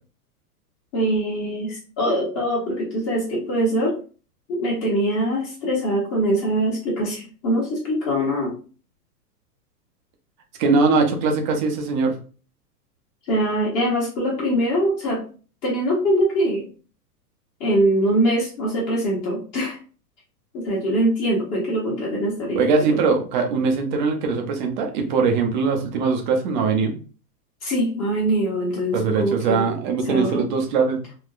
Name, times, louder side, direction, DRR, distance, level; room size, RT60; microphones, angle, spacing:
voice 1, 0.9-3.9 4.5-8.5 13.3-15.2 15.6-16.7 17.6-19.8 20.5-22.6 22.9-23.0 27.6-29.7 30.1-30.4, right 1 dB, 30° left, -5 dB, 1.2 m, -23 dB
voice 2, 10.6-12.1 22.6-26.9 28.9-31.0, right 4 dB, 30° right, 4 dB, 0.5 m, -21 dB
3.6 x 2.2 x 2.3 m, 0.38 s
hypercardioid pair, 130°, 48 cm